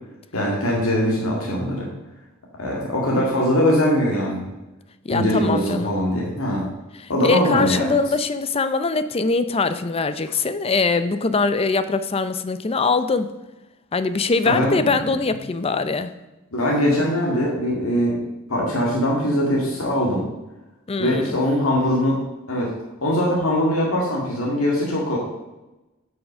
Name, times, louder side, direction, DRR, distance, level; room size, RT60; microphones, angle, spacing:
voice 1, 0.3-1.9 2.6-4.4 5.1-6.7 7.1-7.9 14.4-14.7 16.5-18.2 18.5-20.2 21.0-22.2 22.5-22.7 23.0-25.2, equal, 90° left, -3 dB, 2.1 m, -21 dB
voice 2, 5.0-6.0 7.0-13.3 13.9-16.1 20.9-21.4, left 4 dB, 30° left, 12 dB, 0.5 m, -22 dB
8.3 x 6.3 x 6.2 m, 1.0 s
head